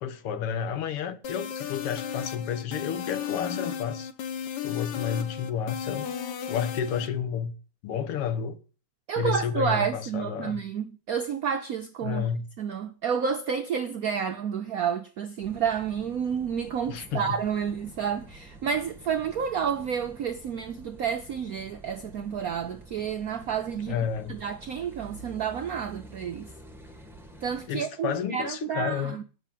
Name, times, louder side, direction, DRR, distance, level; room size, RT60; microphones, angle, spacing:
voice 1, 0.0-4.1 4.6-6.1 6.5-7.5 7.8-8.6 9.2-10.6 12.0-12.4 16.9-17.4 23.9-24.4 27.7-29.2, left 8 dB, 90° left, 1.9 m, -31 dB
sound 1, 1.2-7.1, left 8 dB, 60° left, 1.2 m, -34 dB
voice 2, 9.1-12.3 12.6-24.0 24.3-26.5 27.4-29.2, right 7 dB, 80° right, 0.8 m, -30 dB
Car passing by / Idling / Accelerating revving vroom, 15.4-27.7, right 2 dB, ahead, 0.5 m, -48 dB
9.0 x 6.1 x 7.3 m
omnidirectional pair, 2.4 m